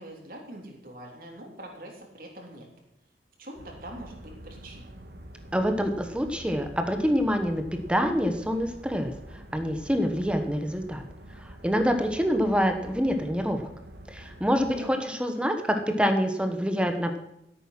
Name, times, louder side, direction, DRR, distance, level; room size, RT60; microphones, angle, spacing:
voice 1, 0.0-2.7 3.4-4.9 12.1-12.4 14.7-15.1, right 1 dB, 50° right, 0 dB, 3.7 m, -43 dB
sound 1, 3.5-14.8, right 1 dB, 70° right, 1.7 m, -46 dB
voice 2, 5.5-7.6 7.9-9.1 9.5-11.0 11.4-13.7 14.1-17.2, equal, 5° right, 6 dB, 1.2 m, -26 dB
14.5 x 8.8 x 6.1 m, 0.83 s
head